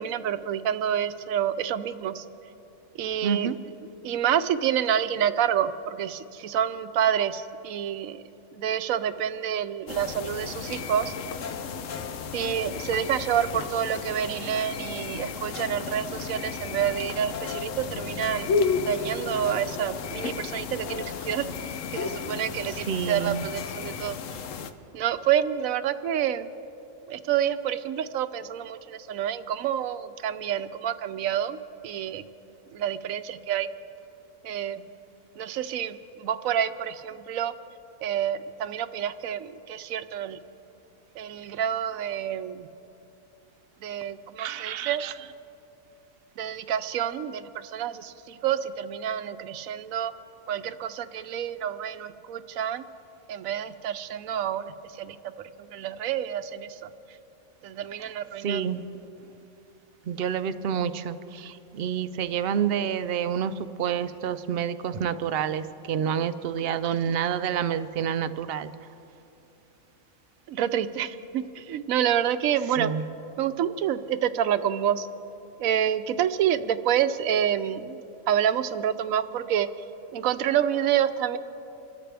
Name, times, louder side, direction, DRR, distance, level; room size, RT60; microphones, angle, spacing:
voice 1, 0.0-2.2 3.0-3.5 4.0-8.2 8.5-11.1 12.3-18.5 18.8-21.5 21.9-24.2 24.9-26.5 27.1-31.6 31.8-32.2 32.7-33.7 34.4-34.9 35.4-37.5 38.0-40.4 41.2-42.7 43.8-45.0 46.4-50.1 50.5-52.8 53.3-55.3 55.6-56.9 57.6-58.7 70.5-72.9 73.4-75.1 75.6-78.0 78.3-79.7 80.1-81.4, right 9 dB, 85° right, 11 dB, 1.0 m, -28 dB
voice 2, 3.2-3.6 22.7-23.5 44.4-45.1 58.0-58.1 58.4-58.8 60.1-68.7 72.8-73.0, right 8 dB, 60° right, 12 dB, 0.7 m, -28 dB
sound 1, 9.9-24.7, left 5 dB, 70° left, 1.1 m, -33 dB
27.0 x 13.5 x 3.4 m, 2.8 s
omnidirectional pair, 1.4 m